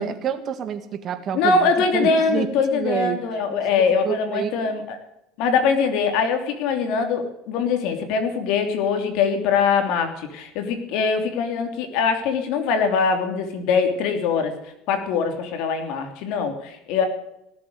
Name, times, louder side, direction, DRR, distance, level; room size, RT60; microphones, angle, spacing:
voice 1, 0.0-3.2 3.5-3.6 4.0-4.7, right 8 dB, 40° right, 9 dB, 1.8 m, -28 dB
voice 2, 1.3-5.0 5.4-14.5 14.9-17.0, left 5 dB, 70° left, 6 dB, 3.1 m, -22 dB
18.0 x 7.8 x 9.6 m, 0.86 s
supercardioid pair, 120°, 0 cm